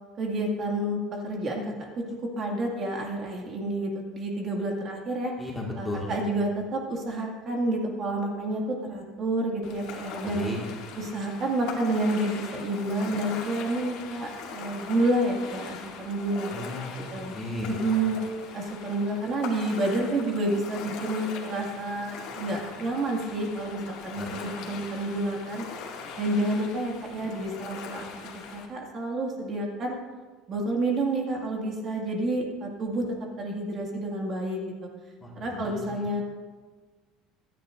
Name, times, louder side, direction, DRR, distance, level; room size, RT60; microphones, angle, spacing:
voice 1, 0.2-2.0 2.4-5.3 5.8-10.4 11.0-16.5 17.1-17.3 17.7-18.2 18.5-25.6 26.2-28.1 28.5-30.0 30.5-33.1 33.4-34.6 35.4-36.2, right 1 dB, 30° right, 0 dB, 2.0 m, -29 dB
voice 2, 5.4-6.1 10.3-10.6 16.5-17.1 17.3-17.7 24.2-24.4 35.2-36.0, left 1 dB, 5° left, -2 dB, 1.8 m, -35 dB
Ocean, 9.6-28.7, left 5 dB, 60° left, 2.1 m, -41 dB
26.5 x 10.0 x 2.6 m, 1.4 s
cardioid pair, 170°, 0 cm